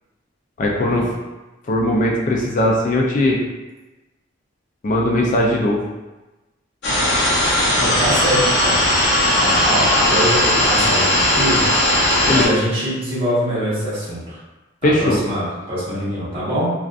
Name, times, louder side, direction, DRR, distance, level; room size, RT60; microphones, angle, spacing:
voice 1, 0.6-1.1 1.7-3.4 4.8-5.8 12.3-12.5 14.8-15.2, left 1 dB, 40° left, -2 dB, 0.3 m, -18 dB
sound 1, 6.8-12.5, left 1 dB, 60° left, 0.8 m, -17 dB
voice 2, 7.8-8.9 9.3-11.6 12.3-14.4 14.8-16.7, equal, 30° right, -10 dB, 1.0 m, -23 dB
2.5 x 2.3 x 2.3 m, 1.1 s
head